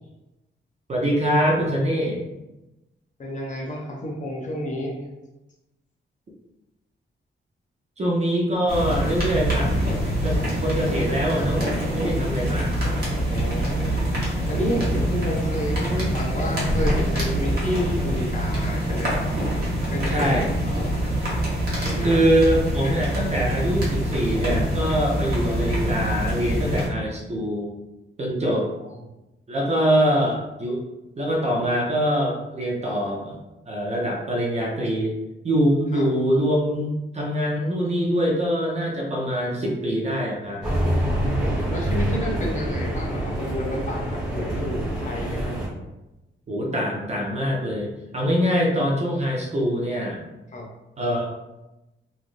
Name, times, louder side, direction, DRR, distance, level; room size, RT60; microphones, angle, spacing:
voice 1, 0.9-2.2 8.0-9.7 10.2-11.6 11.9-12.7 20.1-20.5 22.0-27.7 28.2-28.7 29.5-30.8 31.2-33.4 33.7-35.1 35.4-40.6 46.5-50.2 51.0-51.3, equal, 35° right, -3 dB, 0.6 m, -24 dB
voice 2, 3.2-5.0 13.3-19.3 19.9-20.4 20.8-21.1 21.8-22.2 22.8-23.4 25.2-25.3 35.9-36.0 41.2-45.6 50.5-50.7, left 1 dB, 40° left, -1 dB, 0.6 m, -30 dB
sound 1, 8.7-26.9, right 1 dB, 50° right, 1.0 m, -25 dB
sound 2, 40.6-45.7, right 1 dB, 5° right, 1.2 m, -26 dB
3.1 x 2.5 x 2.5 m, 1.0 s
wide cardioid pair, 155°, 21 cm